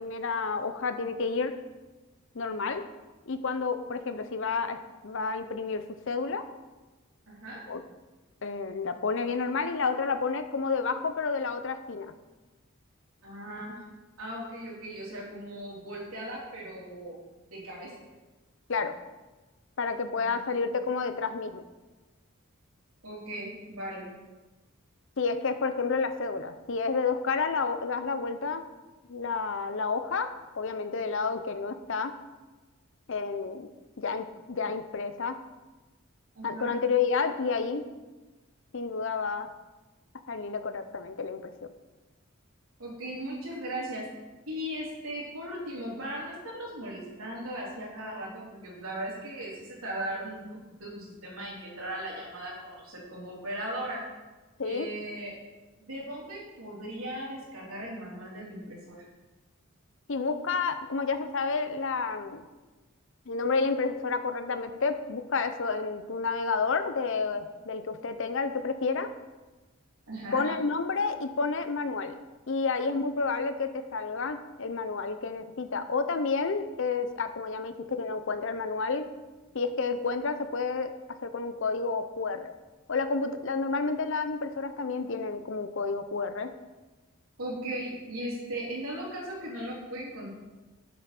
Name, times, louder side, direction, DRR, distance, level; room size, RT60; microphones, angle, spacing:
voice 1, 0.0-1.5 2.3-2.8 3.3-4.8 5.0-6.4 7.7-7.8 8.4-12.1 18.7-18.9 19.8-21.6 25.2-28.6 29.1-30.3 30.6-32.1 33.1-33.7 34.0-35.4 36.4-37.8 38.7-39.5 40.3-41.5 54.6-54.9 60.1-62.4 63.3-69.1 70.3-72.1 72.5-79.1 79.5-80.9 81.2-82.5 82.9-86.5, left 4 dB, 60° left, 9 dB, 0.7 m, -30 dB
voice 2, 7.3-7.6 13.2-13.8 14.2-17.2 17.5-17.9 20.2-20.4 23.0-24.1 36.3-36.7 42.8-44.0 44.5-50.5 50.8-54.0 54.6-55.3 55.8-59.0 70.1-70.5 87.4-90.3, right 1 dB, 90° right, -4 dB, 3.5 m, -38 dB
8.6 x 7.6 x 5.9 m, 1.2 s
head